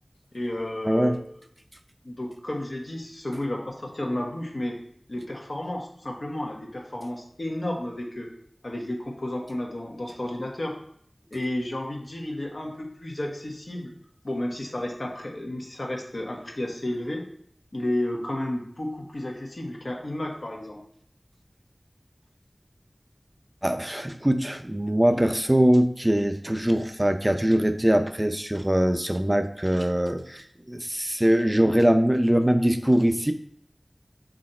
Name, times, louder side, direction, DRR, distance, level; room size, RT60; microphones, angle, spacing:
voice 1, 0.3-1.1 2.0-4.8 5.1-8.3 8.6-10.7 11.3-13.9 14.2-17.2 17.7-20.8, left 1 dB, 70° left, 0 dB, 1.4 m, -32 dB
voice 2, 0.9-1.2 23.6-33.3, right 1 dB, 20° right, 7 dB, 0.5 m, -22 dB
6.3 x 4.0 x 4.4 m, 0.66 s
wide cardioid pair, 40°, 0 cm